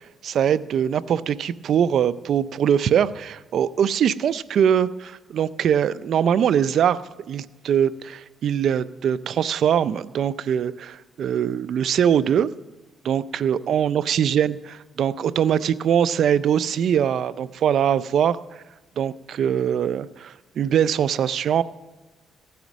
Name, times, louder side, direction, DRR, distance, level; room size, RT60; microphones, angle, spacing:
voice 1, 0.2-7.0 7.3-12.5 13.0-14.6 15.0-18.4 19.0-21.6, right 9 dB, 65° right, 17 dB, 0.4 m, -22 dB
16.0 x 9.3 x 6.1 m, 1.2 s
cardioid pair, 90°, 0 cm